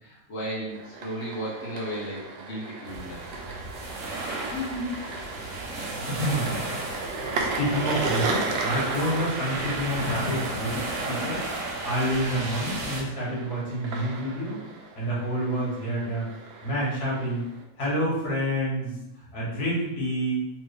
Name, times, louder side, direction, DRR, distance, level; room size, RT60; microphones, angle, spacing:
voice 1, 0.0-3.2, right 1 dB, 45° left, -7 dB, 1.3 m, -35 dB
sound 1, 0.7-17.6, right 3 dB, 90° right, 0.5 m, -35 dB
sound 2, 2.9-13.0, right 2 dB, 60° right, 1.0 m, -34 dB
voice 2, 4.5-4.9 6.1-6.8 7.3-11.4 11.8-14.6 14.9-16.3 16.6-17.4 17.8-19.0 19.3-20.4, equal, 70° left, -6 dB, 1.9 m, -28 dB
3.5 x 3.2 x 3.2 m, 0.85 s
omnidirectional pair, 1.7 m